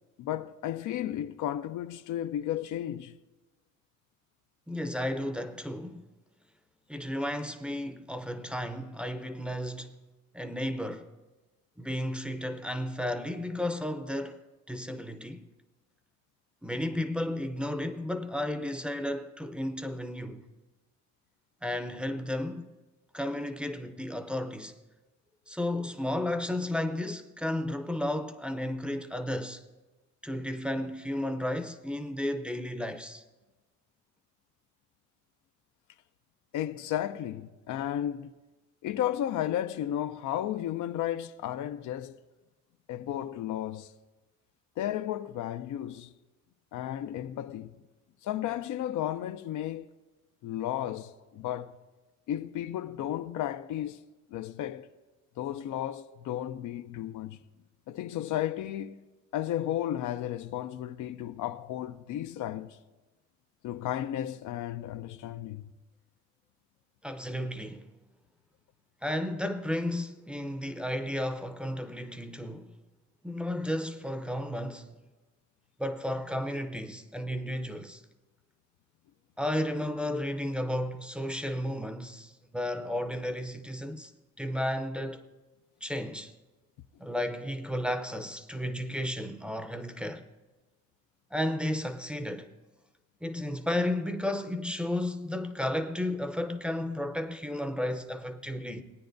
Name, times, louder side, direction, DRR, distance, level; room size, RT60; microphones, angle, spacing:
voice 1, 0.2-3.2 36.5-38.3 38.8-42.2 42.9-43.9 44.8-46.1 46.7-47.8 48.2-49.9 50.4-51.8 52.3-54.0 54.3-54.9 55.4-57.4 57.9-59.0 59.3-62.8 63.6-65.7, left 12 dB, 80° left, 0.5 m, -33 dB
voice 2, 4.7-6.1 6.9-9.9 10.3-11.1 11.8-14.4 14.7-15.4 16.6-20.5 21.6-22.7 23.1-24.8 25.5-29.6 30.2-33.2 67.0-67.9 69.0-72.7 73.2-75.0 75.8-78.0 79.4-84.1 84.4-85.2 85.8-86.3 87.0-90.2 91.3-92.5 93.2-98.8, left 1 dB, 5° right, 0.6 m, -33 dB
18.5 x 9.4 x 2.6 m
cardioid pair, 90°, 30 cm